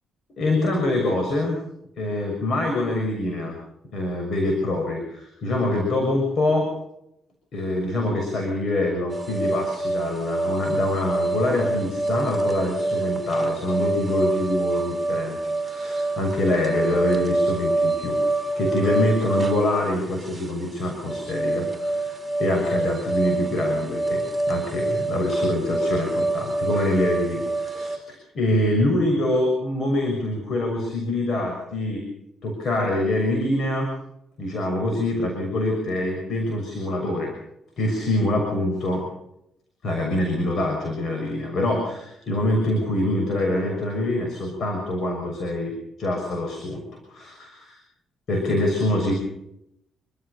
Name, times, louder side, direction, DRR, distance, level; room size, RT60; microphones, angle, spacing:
voice 1, 0.4-1.6 2.0-3.6 3.9-6.7 7.5-32.0 32.4-33.9 34.4-37.3 37.8-39.0 39.8-45.7 46.0-47.8 48.3-49.1, left 1 dB, 60° left, 2 dB, 6.3 m, -25 dB
sound 1, 9.1-28.0, right 2 dB, 15° right, 3.8 m, -26 dB
27.5 x 14.5 x 6.8 m, 0.79 s
cardioid pair, 90°, 0 cm